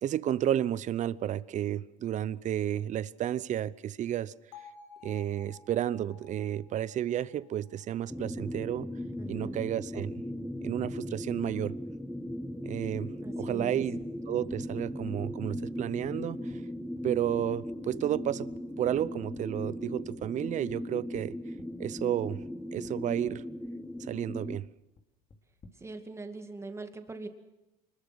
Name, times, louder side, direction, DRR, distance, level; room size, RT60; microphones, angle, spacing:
voice 1, 0.0-4.3 5.0-8.9 9.3-10.1 10.6-11.8 12.6-16.6 17.0-21.3 21.8-22.4 22.7-23.4 24.0-24.7, right 11 dB, 40° right, 0.7 m, -32 dB
Bell, 4.5-8.6, left 6 dB, 85° left, 4.3 m, -54 dB
sound 1, 8.1-24.6, left 1 dB, ahead, 0.9 m, -38 dB
voice 2, 9.2-9.7 13.2-13.7 25.8-27.3, right 3 dB, 15° right, 2.3 m, -42 dB
sound 2, 12.9-13.0 13.5-13.6 14.0-14.1 14.5-14.6 15.0-15.1 15.5-15.6 16.0-16.2 16.5-16.6 17.0-17.1 17.3-17.4 17.7-17.8 18.1-18.2 18.5-19.0 19.4-19.5 19.8-19.9 20.2-20.3 20.7-20.8 21.1-21.3 21.6-21.7 22.0-22.1 22.4-22.5 22.8-22.9 23.3-23.4 23.6-24.1 24.3-24.4 24.6-25.0 25.3-25.8, left 3 dB, 30° left, 3.0 m, -53 dB
25.0 x 21.0 x 6.3 m
supercardioid pair, 110°, 19 cm